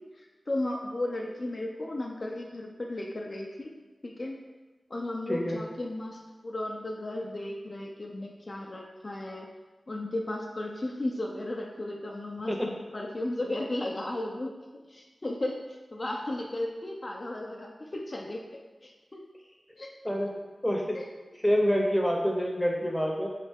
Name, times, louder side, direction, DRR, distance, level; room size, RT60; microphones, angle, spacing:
voice 1, 0.0-3.7 4.0-4.4 4.9-9.5 9.9-14.5 14.9-19.2 19.8-20.2 20.9-21.0, left 1 dB, 45° left, 0 dB, 0.4 m, -35 dB
voice 2, 5.3-5.6 12.5-12.6 20.0-20.3 20.6-21.0 21.4-23.3, equal, ahead, 0 dB, 0.7 m, -26 dB
3.7 x 3.2 x 3.5 m, 1.3 s
cardioid pair, 55°, 0 cm